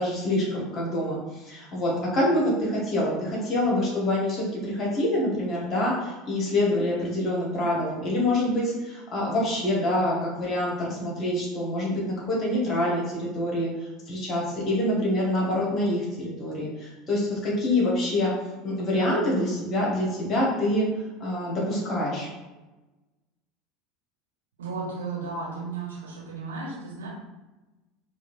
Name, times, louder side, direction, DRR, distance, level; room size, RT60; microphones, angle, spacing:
voice 1, 0.0-13.7 14.1-18.3 18.6-20.9 21.2-22.3, left 1 dB, 35° left, -4 dB, 1.3 m, -26 dB
voice 2, 24.6-27.1, right 4 dB, 70° right, -5 dB, 1.3 m, -34 dB
4.5 x 2.5 x 2.7 m, 1.1 s
figure-of-eight pair, 70°, 0 cm